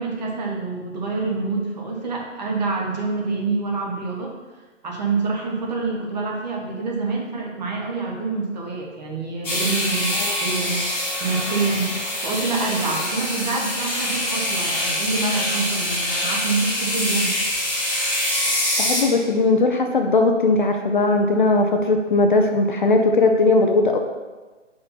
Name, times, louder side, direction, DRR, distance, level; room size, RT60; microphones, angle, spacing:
voice 1, 0.0-4.3 4.8-10.9 11.2-11.9 12.2-17.3, right 3 dB, 35° right, -1 dB, 1.2 m, -26 dB
sound 1, 9.4-19.0, left 1 dB, 5° left, 1.4 m, -25 dB
voice 2, 18.8-24.0, left 3 dB, 40° left, 4 dB, 0.5 m, -18 dB
5.7 x 5.2 x 4.2 m, 1.3 s
hypercardioid pair, 150°, 37 cm